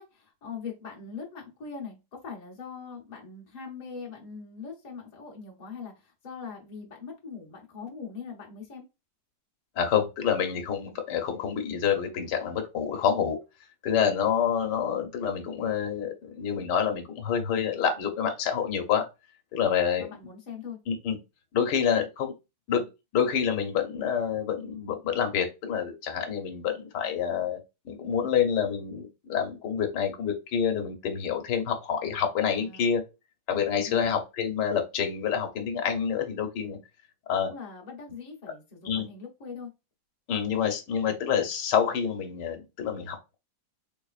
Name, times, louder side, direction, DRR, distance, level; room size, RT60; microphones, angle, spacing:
voice 1, 0.0-8.8 19.6-20.8 32.5-33.0 33.8-34.1 37.4-39.7, left 5 dB, 30° left, -1 dB, 0.8 m, -42 dB
voice 2, 9.8-13.4 13.8-19.1 19.5-20.1 20.9-21.2 21.5-22.3 22.7-22.8 23.1-27.6 27.8-33.0 33.5-36.8 37.3-37.5 38.8-39.1 40.3-43.4, left 7 dB, 85° left, 5 dB, 1.4 m, -27 dB
3.6 x 3.2 x 2.4 m, 0.26 s
omnidirectional pair, 1.8 m